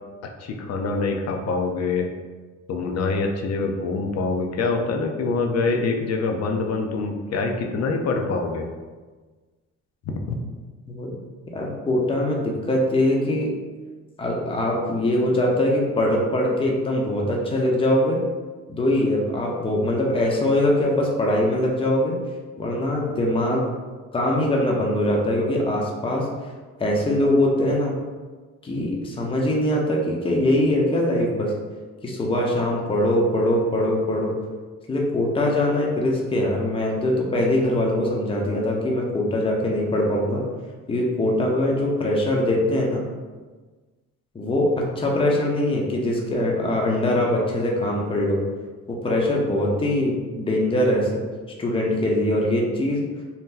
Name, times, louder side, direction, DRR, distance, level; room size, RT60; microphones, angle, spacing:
voice 1, 0.4-2.1 2.7-8.7, left 3 dB, 60° left, 3 dB, 0.6 m, -25 dB
voice 2, 11.5-13.5 14.2-18.2 18.7-22.1 22.6-23.6 24.1-26.3 26.8-28.0 28.6-31.5 32.0-34.4 34.9-40.4 40.9-43.0 44.3-48.4 48.9-51.2 51.6-53.1, left 1 dB, 20° left, -2 dB, 0.6 m, -22 dB
2.8 x 2.2 x 3.7 m, 1.4 s
cardioid pair, 90°, 30 cm